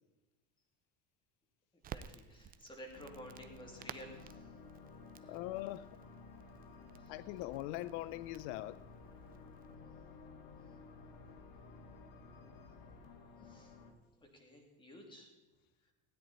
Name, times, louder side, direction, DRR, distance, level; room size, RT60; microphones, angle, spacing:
voice 1, 1.7-4.5 5.2-5.4 7.0-7.3 10.7-10.8 13.4-13.7 14.2-15.3 15.8-15.9, equal, 15° left, 2.7 m, -54 dB
Crackle, 1.8-9.8, right 9 dB, 25° right, 0.4 m, -55 dB
sound 1, 2.9-13.9, left 4 dB, 55° left, 1.8 m, -55 dB
voice 2, 5.3-6.0 7.1-8.9, left 16 dB, 80° left, 0.5 m, -42 dB
16.0 x 9.6 x 4.2 m
cardioid pair, 130°, 38 cm